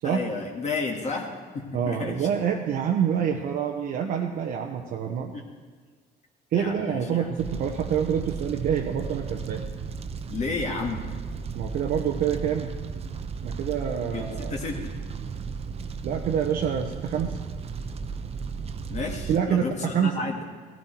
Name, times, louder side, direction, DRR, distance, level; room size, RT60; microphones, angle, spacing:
voice 1, 0.0-2.3 5.3-5.4 6.5-7.3 10.3-11.0 14.1-14.9 18.9-20.4, left 4 dB, 45° left, 0 dB, 1.8 m, -32 dB
voice 2, 1.7-5.3 6.5-9.6 11.5-12.7 13.4-14.5 16.0-17.4 19.3-20.2, right 8 dB, 65° right, 1 dB, 1.0 m, -27 dB
Fire, 7.4-19.4, right 5 dB, 35° right, 0.8 m, -35 dB
16.5 x 13.5 x 4.5 m, 1.5 s
cardioid pair, 110°, 17 cm